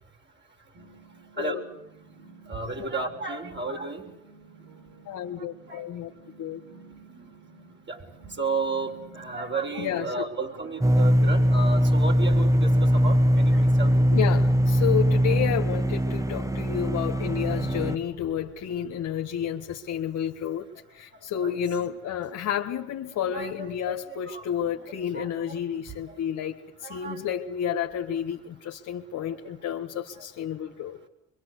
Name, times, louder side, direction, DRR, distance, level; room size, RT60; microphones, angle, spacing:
sound 1, 0.7-17.8, right 4 dB, 70° right, 5.4 m, -53 dB
voice 1, 2.5-4.0 5.7-5.9 7.1-7.3 7.9-8.0 8.3-14.1 21.4-21.6 23.2-26.2 26.8-27.4 29.3-29.4 29.6-29.9, right 3 dB, 35° right, 6.8 m, -34 dB
voice 2, 5.1-6.1 6.4-6.6 9.8-10.3 14.1-20.7 20.9-31.0, left 9 dB, 80° left, 1.7 m, -31 dB
sound 2, 10.8-18.0, equal, 10° right, 1.2 m, -21 dB
25.0 x 24.0 x 8.3 m
cardioid pair, 90°, 30 cm